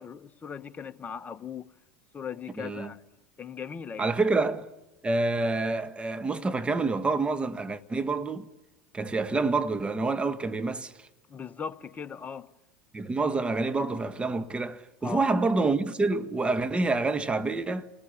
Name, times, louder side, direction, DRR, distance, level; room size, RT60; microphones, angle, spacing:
voice 1, 0.0-1.7 2.1-3.1 3.4-4.2 11.3-12.5 15.0-15.3, left 6 dB, 25° left, 1.1 m, -38 dB
voice 2, 2.6-2.9 4.0-4.7 5.0-8.5 8.9-10.9 12.9-17.9, right 3 dB, 15° right, 1.6 m, -27 dB
30.0 x 20.5 x 7.2 m
hypercardioid pair, 90°, 6 cm